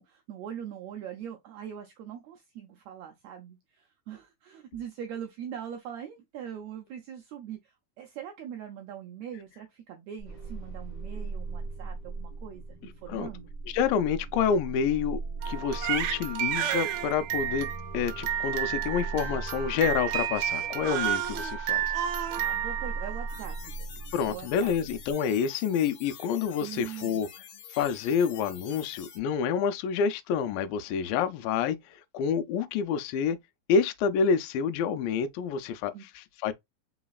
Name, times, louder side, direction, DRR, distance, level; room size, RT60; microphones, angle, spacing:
voice 1, 0.0-13.5 22.3-23.8 24.3-24.7 26.6-27.3 35.9-36.0, right 9 dB, 90° right, 1.5 m, -42 dB
sound 1, 10.2-25.1, right 3 dB, 35° left, 1.3 m, -39 dB
voice 2, 13.7-15.2 15.5-17.7 17.9-21.9 24.1-27.3 27.7-33.4 33.7-36.5, left 6 dB, 90° left, 2.4 m, -28 dB
Crying sobbing, 15.4-23.6, right 10 dB, 70° right, 1.8 m, -31 dB
sound 2, 23.3-29.2, left 8 dB, 70° left, 1.7 m, -47 dB
4.9 x 3.9 x 2.3 m
omnidirectional pair, 4.0 m